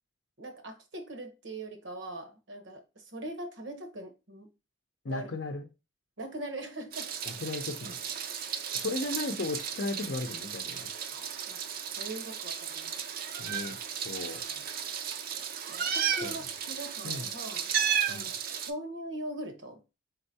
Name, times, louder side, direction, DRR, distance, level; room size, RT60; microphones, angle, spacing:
voice 1, 0.4-4.5 5.1-5.3 6.2-7.1 8.4-8.7 11.1-11.6 12.0-13.0 14.3-14.6 15.7-17.7 18.1-19.8, right 1 dB, 75° right, 1.1 m, -41 dB
voice 2, 5.0-5.7 7.3-8.0 8.7-10.9 13.4-14.4 16.2-16.4 17.0-17.3 18.1-18.3, left 2 dB, 60° left, 0.6 m, -36 dB
Meow, 6.9-18.7, right 8 dB, 50° right, 0.5 m, -34 dB
4.4 x 3.9 x 2.7 m
head